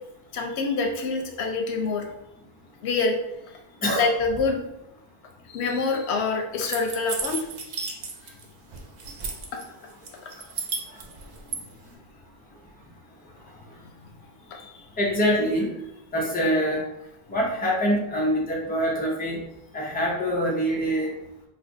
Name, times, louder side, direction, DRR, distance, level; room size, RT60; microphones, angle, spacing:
voice 1, 0.3-2.1 2.8-3.2 3.9-4.6 5.5-7.4 9.5-9.6 14.5-14.7, left 4 dB, 90° left, 3 dB, 0.9 m, -26 dB
sound 1, 6.7-8.4 8.7-9.6 10.1-11.6, right 5 dB, 55° right, 0.5 m, -33 dB
voice 2, 15.0-15.7 16.1-16.9 17.3-19.4 19.7-21.1, equal, 10° left, -3 dB, 0.6 m, -24 dB
4.4 x 2.2 x 2.6 m, 0.84 s
omnidirectional pair, 1.1 m